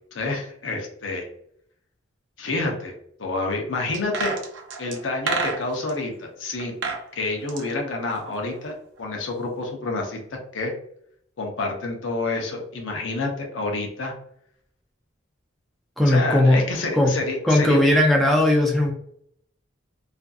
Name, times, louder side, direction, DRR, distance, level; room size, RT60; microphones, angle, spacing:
voice 1, 0.1-1.3 2.4-2.9 3.2-4.3 4.8-6.7 7.1-10.2 10.5-10.7 11.4-14.1 16.1-17.9, left 2 dB, 80° left, 1 dB, 0.6 m, -28 dB
sound 1, 3.9-6.0 6.6-7.0 7.3-8.7 9.0-9.1, right 4 dB, 70° right, 0.5 m, -30 dB
voice 2, 16.0-16.6 16.9-17.1 17.4-18.9, left 1 dB, ahead, -2 dB, 0.4 m, -18 dB
2.5 x 2.4 x 2.2 m, 0.69 s
head